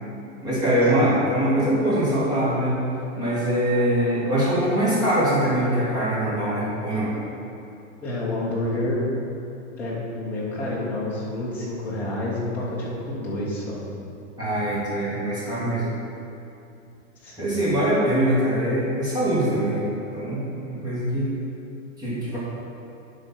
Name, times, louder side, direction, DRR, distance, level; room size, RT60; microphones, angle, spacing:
voice 1, 0.4-2.8 3.2-7.1 14.4-15.9 17.4-19.9 20.1-21.3 22.0-22.4, right 1 dB, 10° right, -9 dB, 2.0 m, -23 dB
voice 2, 8.0-9.1 9.8-13.8 17.2-17.5, left 1 dB, 5° left, -7 dB, 0.4 m, -29 dB
9.9 x 3.9 x 5.8 m, 2.7 s
hypercardioid pair, 160°, 41 cm